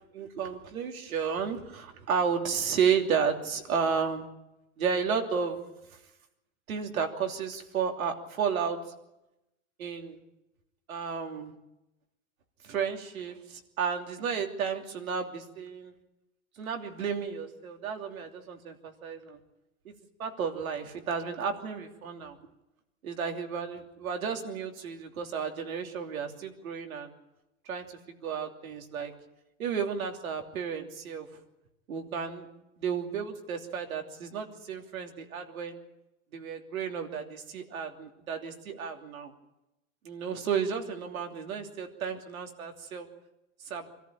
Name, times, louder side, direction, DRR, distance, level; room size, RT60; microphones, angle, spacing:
voice 1, 0.0-4.3 4.8-5.6 6.7-8.8 9.8-10.2 10.9-11.5 12.6-15.9 16.6-19.4 19.8-19.9 20.2-22.4 23.0-27.1 27.6-27.8 28.2-29.1 29.6-31.3 31.9-32.5 32.8-35.8 36.3-39.3 40.0-43.1 43.7-43.9, right 6 dB, 85° right, 4 dB, 3.1 m, -32 dB
25.5 x 14.0 x 8.9 m, 0.90 s
hypercardioid pair, 90°, 41 cm